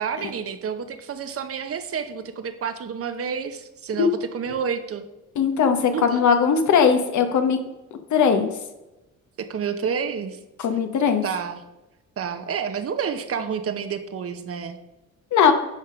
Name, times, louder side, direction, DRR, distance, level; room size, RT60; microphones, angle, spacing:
voice 1, 0.0-5.0 5.9-6.2 9.4-10.4 11.2-11.7 12.2-14.8, right 6 dB, 50° right, 9 dB, 0.9 m, -29 dB
voice 2, 5.4-7.6 8.1-8.5 10.6-11.2 15.3-15.5, left 6 dB, 70° left, 7 dB, 1.1 m, -19 dB
9.8 x 3.7 x 5.6 m, 0.99 s
cardioid pair, 90°, 30 cm